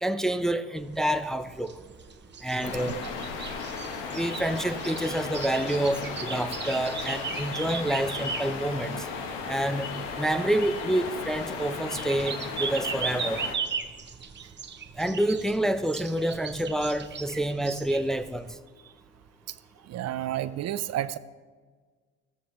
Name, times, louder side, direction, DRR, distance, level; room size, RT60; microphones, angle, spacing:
voice 1, 0.0-1.7 2.4-3.0 4.1-9.0 9.5-13.4 15.0-18.5, right 1 dB, ahead, 0.5 m, -28 dB
sound 1, 0.8-18.5, right 6 dB, 35° right, 1.0 m, -38 dB
sound 2, 2.6-13.6, left 5 dB, 90° left, 1.1 m, -35 dB
voice 2, 19.8-21.2, right 12 dB, 55° right, 0.6 m, -31 dB
14.0 x 13.5 x 3.1 m
supercardioid pair, 70°, 31 cm